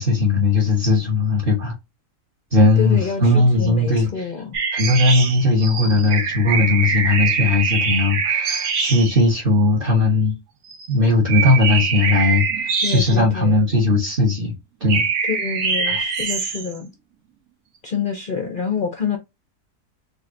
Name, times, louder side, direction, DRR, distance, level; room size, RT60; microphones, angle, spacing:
voice 1, 0.0-1.7 2.5-4.3 4.7-10.3 10.9-14.5 14.8-15.1 15.9-16.0, left 2 dB, 35° right, 1.3 m, -18 dB
voice 2, 2.8-4.6 12.8-13.6 15.3-16.9 17.8-19.2, left 6 dB, 55° left, 0.5 m, -27 dB
sound 1, 4.5-9.2 10.7-10.9 11.3-13.5 14.9-16.8, right 5 dB, 70° right, 1.4 m, -23 dB
4.7 x 2.7 x 2.5 m
omnidirectional pair, 1.6 m